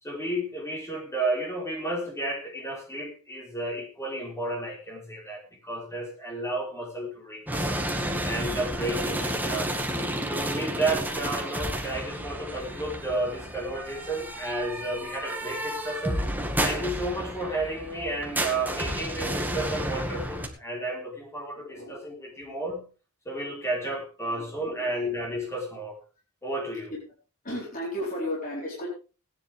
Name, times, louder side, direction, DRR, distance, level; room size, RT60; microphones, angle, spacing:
voice 1, 0.0-7.8 8.2-9.7 10.3-16.3 16.6-22.9 23.2-26.0 26.4-26.9, right 1 dB, 15° left, 0 dB, 4.5 m, -32 dB
sound 1, 7.5-20.5, right 1 dB, 10° right, 2.0 m, -31 dB
voice 2, 18.3-18.6 21.6-22.0 24.3-24.8 27.4-28.9, left 1 dB, 40° left, -4 dB, 4.6 m, -35 dB
18.5 x 10.0 x 3.6 m, 0.34 s
head